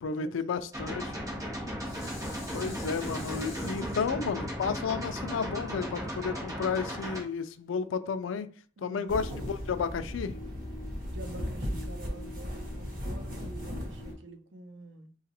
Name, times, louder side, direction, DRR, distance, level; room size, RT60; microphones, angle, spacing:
voice 1, 0.0-1.2 2.5-8.5 8.8-10.4, left 5 dB, 85° left, 0.4 m, -32 dB
sound 1, 0.7-7.2, equal, 20° right, 1.1 m, -36 dB
Dishes pots and pans, 1.2-6.5 7.1-7.2, left 1 dB, 15° left, 1.0 m, -47 dB
voice 2, 8.8-9.2 11.1-15.1, right 2 dB, 70° right, 0.6 m, -47 dB
sound 2, 9.1-14.1, equal, 45° right, 1.2 m, -37 dB
3.8 x 2.4 x 2.9 m
head